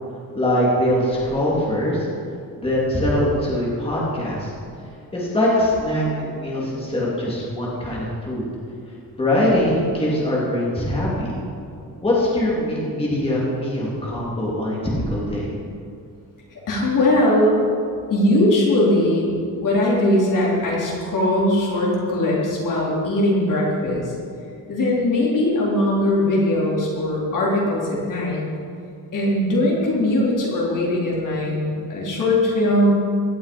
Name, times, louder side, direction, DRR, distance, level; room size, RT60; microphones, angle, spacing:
voice 1, 0.3-2.0 2.6-4.5 5.1-8.4 9.2-11.3 12.0-15.5, left 1 dB, 15° left, -6 dB, 3.3 m, -22 dB
voice 2, 16.5-17.6 18.1-19.4 19.6-24.1 24.7-28.4 29.1-32.9, left 1 dB, 55° left, -4 dB, 4.0 m, -20 dB
17.5 x 12.0 x 5.4 m, 2.4 s
wide cardioid pair, 165°, 37 cm